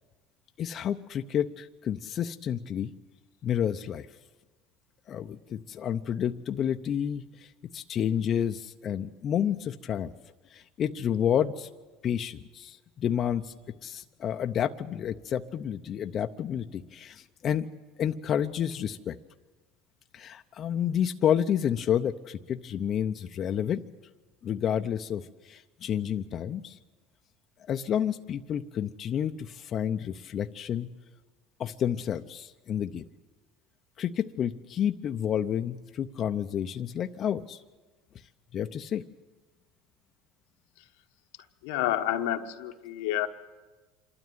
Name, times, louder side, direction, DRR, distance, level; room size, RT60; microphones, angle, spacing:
voice 1, 0.6-2.9 3.4-4.1 5.1-10.1 10.5-11.7 12.0-13.5 13.8-17.7 18.0-19.2 20.1-23.8 24.4-26.8 27.7-30.9 31.6-33.0 34.0-37.6 38.5-39.0, left 9 dB, 40° left, 6 dB, 0.7 m, -30 dB
voice 2, 41.6-43.3, left 13 dB, 85° left, 5 dB, 1.2 m, -29 dB
26.5 x 12.5 x 9.3 m, 1.3 s
supercardioid pair, 120°, 0 cm